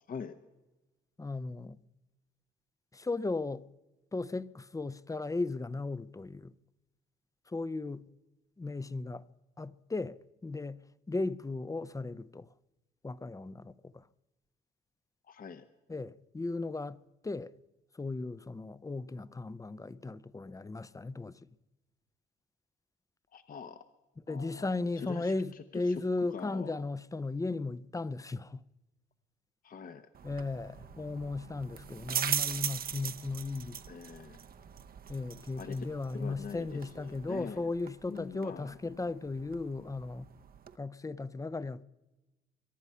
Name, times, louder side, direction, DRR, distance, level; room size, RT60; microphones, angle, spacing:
voice 1, 0.1-0.4 15.3-15.6 23.3-23.8 24.3-26.7 29.6-30.1 33.9-34.4 35.6-35.8 36.1-37.7 38.1-39.0, left 6 dB, 45° left, 0.9 m, -44 dB
voice 2, 1.2-1.8 2.9-3.6 4.1-6.5 7.5-8.1 8.6-9.2 9.6-10.2 10.4-10.8 11.1-12.5 13.0-14.0 15.9-17.5 17.9-21.4 24.3-28.6 30.2-33.8 35.1-40.3 40.8-41.8, left 3 dB, 15° left, 0.6 m, -36 dB
sound 1, 30.1-40.8, right 8 dB, 50° right, 0.8 m, -40 dB
23.5 x 11.0 x 5.6 m
cardioid pair, 90°, 20 cm